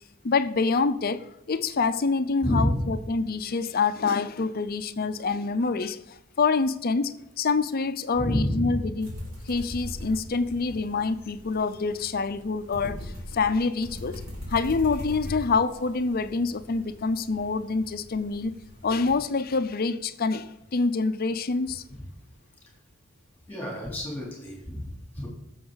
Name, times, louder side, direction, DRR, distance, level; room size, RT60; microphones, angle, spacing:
voice 1, 0.2-9.1 9.5-14.2 14.5-18.5 18.8-21.8, left 4 dB, 45° left, 0.5 m, -26 dB
voice 2, 2.4-2.9 8.1-8.8 21.9-22.0 23.5-25.3, equal, 10° left, 3.6 m, -29 dB
sound 1, 9.0-19.1, left 1 dB, 60° right, 3.7 m, -41 dB
15.5 x 7.0 x 4.0 m
head